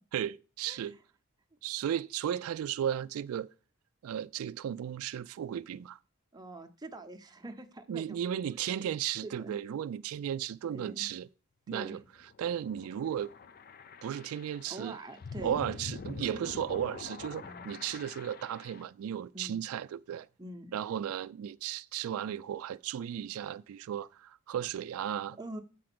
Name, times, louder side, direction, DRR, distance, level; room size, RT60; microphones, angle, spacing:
voice 1, 0.1-1.0 1.6-3.5 4.0-6.0 7.9-11.3 11.7-12.0 12.4-13.3 14.0-15.0 15.4-20.3 20.7-25.4, right 9 dB, 85° right, 0.3 m, -35 dB
voice 2, 6.3-8.4 9.2-9.5 10.7-11.1 11.7-12.0 14.7-15.6 17.4-17.7 19.3-19.6 20.4-20.7 25.4-25.6, right 2 dB, 20° right, 0.7 m, -45 dB
sound 1, 11.9-18.8, left 4 dB, 45° left, 0.4 m, -45 dB
7.6 x 4.9 x 6.0 m
head